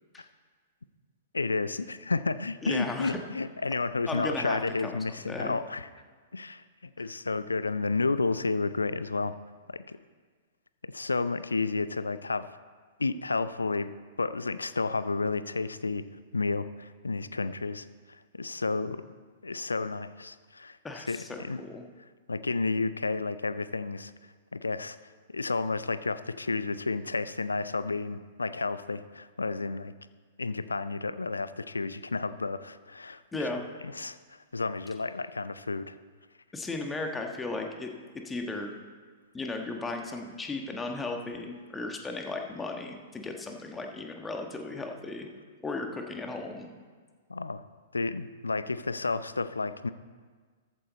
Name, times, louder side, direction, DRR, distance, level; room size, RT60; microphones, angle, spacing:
voice 1, 1.3-5.9 6.3-9.4 9.7-10.0 10.9-12.6 13.0-13.9 14.2-16.1 16.3-19.0 19.4-21.6 22.3-24.1 24.5-25.0 25.3-29.9 30.4-33.2 33.8-36.0 47.3-47.6 47.9-49.9, left 3 dB, 80° left, 14 dB, 0.5 m, -31 dB
voice 2, 2.6-3.2 4.1-5.0 5.2-5.6 20.8-21.8 33.3-33.6 36.5-37.9 38.2-38.7 39.3-45.3 45.6-46.7, left 3 dB, 10° left, 3 dB, 1.4 m, -35 dB
14.0 x 8.2 x 4.2 m, 1.5 s
figure-of-eight pair, 110°, 0 cm